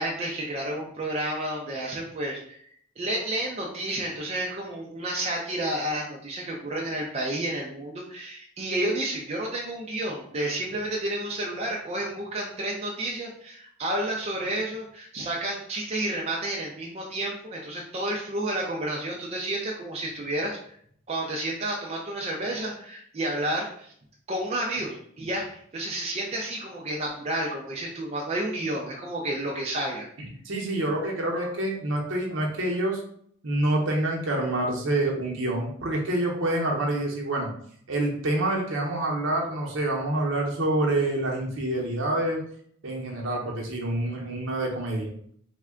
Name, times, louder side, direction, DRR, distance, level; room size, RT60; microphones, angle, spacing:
voice 1, 0.0-2.7 3.0-20.6 21.1-23.9 24.3-30.1, right 1 dB, 30° right, -2 dB, 0.4 m, -31 dB
voice 2, 30.4-33.0 33.4-37.5 37.9-42.4 42.8-45.1, right 1 dB, 65° right, -1 dB, 0.8 m, -27 dB
3.5 x 2.2 x 3.6 m, 0.64 s
head